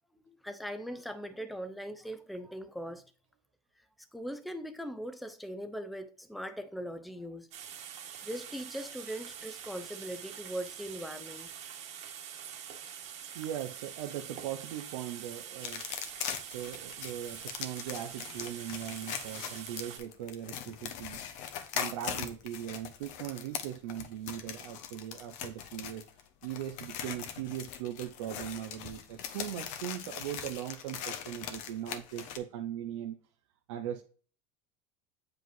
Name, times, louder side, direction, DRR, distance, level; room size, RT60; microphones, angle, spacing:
voice 1, 0.3-3.1 4.1-7.5 7.8-7.9 8.2-11.5, equal, ahead, 0.6 m, -40 dB
sound 1, 7.5-20.0, right 9 dB, 50° right, 1.4 m, -45 dB
voice 2, 13.3-15.8 16.5-26.0 26.4-33.2 33.7-34.0, right 11 dB, 85° right, 0.7 m, -39 dB
sound 2, 15.6-32.4, left 9 dB, 55° left, 1.0 m, -41 dB
7.7 x 4.9 x 2.6 m
supercardioid pair, 145°, 15 cm